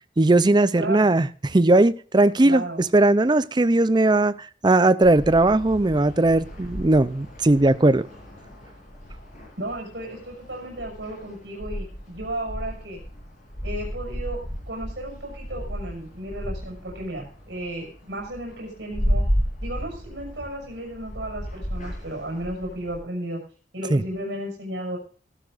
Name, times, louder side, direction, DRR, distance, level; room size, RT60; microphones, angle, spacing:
voice 1, 0.2-4.3 4.6-8.1 23.9-24.0, right 2 dB, 25° right, 0.5 m, -18 dB
voice 2, 0.8-1.1 2.4-2.8 9.6-13.0 13.6-14.4 14.7-19.2 19.6-23.4 23.7-25.0, right 1 dB, 75° right, 6.3 m, -34 dB
sound 1, 5.0-23.0, equal, 45° left, 7.5 m, -33 dB
17.0 x 12.5 x 2.5 m
head